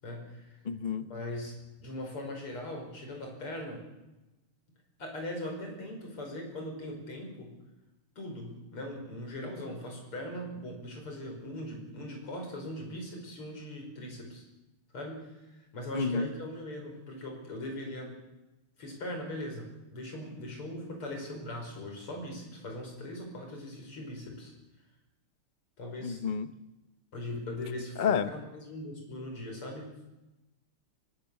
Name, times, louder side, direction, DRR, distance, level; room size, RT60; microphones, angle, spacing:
voice 1, 0.0-0.6 1.1-3.8 5.0-7.6 8.2-14.4 14.9-18.2 18.8-24.5 25.8-26.2 27.1-29.9, left 1 dB, 80° left, 2 dB, 6.3 m, -40 dB
voice 2, 0.6-1.1 15.9-16.3 26.0-26.5 28.0-28.3, left 6 dB, 45° left, 12 dB, 0.6 m, -29 dB
23.5 x 20.0 x 7.1 m, 1.0 s
omnidirectional pair, 2.4 m